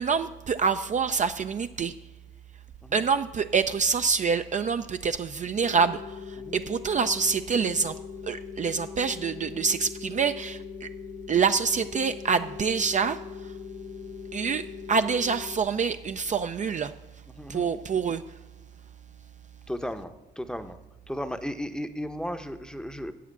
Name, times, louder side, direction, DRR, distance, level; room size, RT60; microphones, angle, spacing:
voice 1, 0.0-1.9 2.9-8.0 8.2-10.9 11.3-13.6 14.3-18.4, right 5 dB, 40° right, 8 dB, 0.4 m, -26 dB
sound 1, 5.6-15.6, left 7 dB, 75° left, 1.9 m, -41 dB
voice 2, 17.3-17.7 19.7-20.8 21.1-23.1, equal, 5° left, 9 dB, 0.8 m, -35 dB
8.0 x 7.6 x 8.0 m, 1.2 s
cardioid pair, 90°, 20 cm